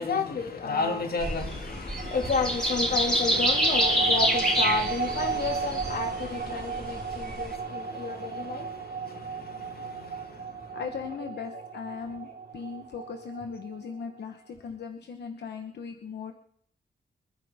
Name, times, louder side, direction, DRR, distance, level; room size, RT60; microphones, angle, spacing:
voice 1, 0.0-10.8 12.3-12.4, left 4 dB, 65° left, 2.4 m, -31 dB
sound 1, 1.2-7.5, equal, 5° left, 3.6 m, -27 dB
sound 2, 2.0-14.2, right 5 dB, 70° right, 1.3 m, -36 dB
voice 2, 10.7-12.3 12.5-16.3, left 5 dB, 85° left, 1.2 m, -38 dB
27.5 x 9.9 x 3.6 m
wide cardioid pair, 125°, 17 cm